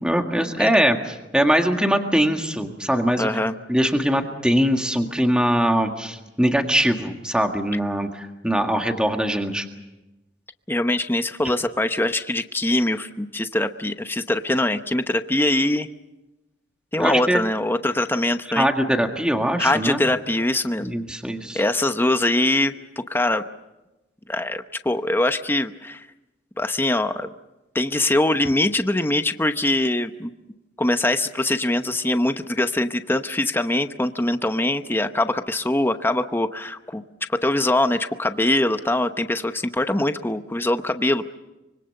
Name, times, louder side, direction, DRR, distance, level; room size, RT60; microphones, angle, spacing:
voice 1, 0.0-3.3 3.7-9.7 17.0-17.4 18.6-20.0 20.8-21.6, equal, 5° right, 4 dB, 1.7 m, -22 dB
voice 2, 3.2-3.5 10.7-15.9 16.9-18.7 19.6-20.9 21.5-22.7 23.1-23.4 24.3-26.1 26.6-27.3 27.7-30.3 30.8-37.0 37.3-41.4, left 1 dB, 10° left, 9 dB, 0.9 m, -23 dB
25.0 x 24.5 x 6.6 m, 1.0 s
head